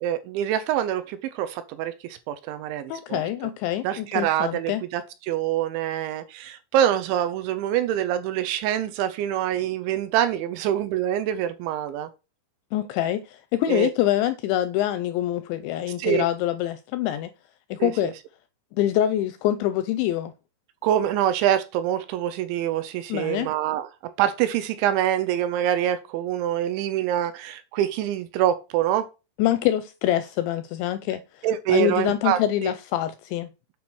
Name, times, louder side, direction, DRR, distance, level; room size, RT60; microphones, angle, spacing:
voice 1, 0.0-3.2 3.8-12.1 13.7-13.9 16.0-16.3 17.8-17.9 20.8-29.1 31.4-32.4, right 11 dB, 80° right, 2.8 m, -25 dB
voice 2, 2.9-4.8 12.7-17.3 17.7-18.1 18.8-20.3 23.1-23.5 29.4-33.5, left 12 dB, 85° left, 2.6 m, -25 dB
8.6 x 5.5 x 6.1 m
omnidirectional pair, 5.7 m